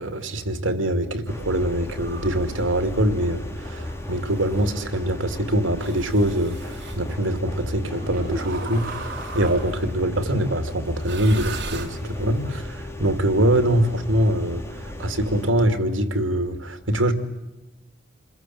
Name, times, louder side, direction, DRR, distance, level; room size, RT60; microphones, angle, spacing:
voice 1, 0.0-17.1, right 1 dB, 85° right, 2.5 m, -23 dB
sound 1, 1.3-15.5, left 1 dB, 15° left, 2.6 m, -35 dB
sound 2, 1.9-2.6 3.6-4.8 5.8-7.0 8.3-9.9 11.0-12.4, right 3 dB, 65° right, 3.9 m, -37 dB
sound 3, 7.8-10.1 10.4-10.5 11.0-11.1 14.8-14.9, right 2 dB, 50° right, 7.6 m, -39 dB
28.5 x 21.5 x 9.2 m
head